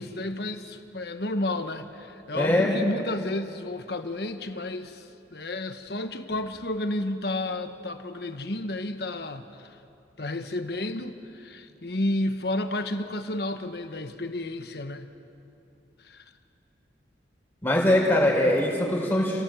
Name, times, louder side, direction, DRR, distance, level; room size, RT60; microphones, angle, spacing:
voice 1, 0.0-9.7 10.2-15.1 16.0-16.2, left 1 dB, 60° left, 8 dB, 1.3 m, -31 dB
voice 2, 2.3-2.7 17.6-19.4, left 1 dB, 10° left, -3 dB, 4.4 m, -22 dB
29.0 x 18.0 x 7.7 m, 2.7 s
head